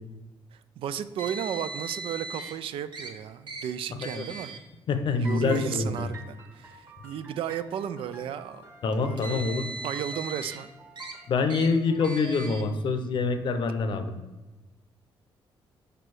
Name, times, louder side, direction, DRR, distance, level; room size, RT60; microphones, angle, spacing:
voice 1, 0.5-4.6 5.1-8.7 9.0-9.4 9.8-10.7, right 9 dB, 80° right, 13 dB, 0.4 m, -34 dB
Car, 1.2-2.5 2.9-3.1 3.5-3.6 4.0-4.6 5.4-5.6 6.5-6.6 8.9-10.6 11.0-11.1 11.5-11.7 12.0-12.6, right 3 dB, 55° right, 1.0 m, -38 dB
voice 2, 4.9-6.1 8.8-9.7 11.3-14.2, left 4 dB, 60° left, 8 dB, 0.7 m, -26 dB
sound 1, 5.2-12.6, right 1 dB, 30° right, 1.3 m, -48 dB
5.1 x 4.5 x 4.7 m, 1.1 s
cardioid pair, 120°, 9 cm